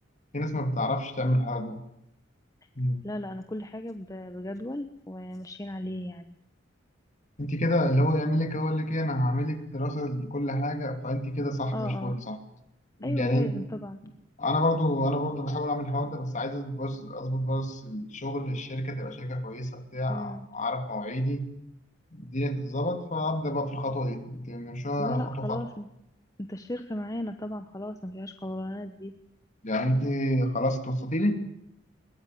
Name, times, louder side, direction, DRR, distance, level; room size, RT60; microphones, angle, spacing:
voice 1, 0.3-1.8 2.8-3.1 7.4-12.4 13.0-13.5 14.4-21.5 22.1-25.6 29.6-31.4, left 1 dB, 40° left, 7 dB, 2.8 m, -28 dB
voice 2, 3.0-6.4 11.7-12.2 13.0-14.0 20.1-20.5 25.0-25.9 26.4-29.1, left 1 dB, 20° left, 8 dB, 1.0 m, -35 dB
21.5 x 21.0 x 9.4 m, 0.81 s
head